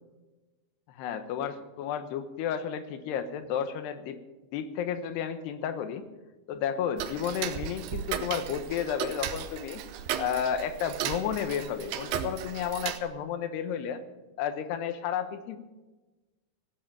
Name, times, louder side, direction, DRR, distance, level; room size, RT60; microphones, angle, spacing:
voice 1, 0.9-4.2 4.5-6.0 6.5-9.8 10.2-14.0 14.4-15.6, left 8 dB, 90° left, 10 dB, 3.2 m, -32 dB
Tick-tock, 7.0-13.0, right 10 dB, 80° right, 2.8 m, -35 dB
17.0 x 7.9 x 8.8 m, 1.1 s
omnidirectional pair, 4.7 m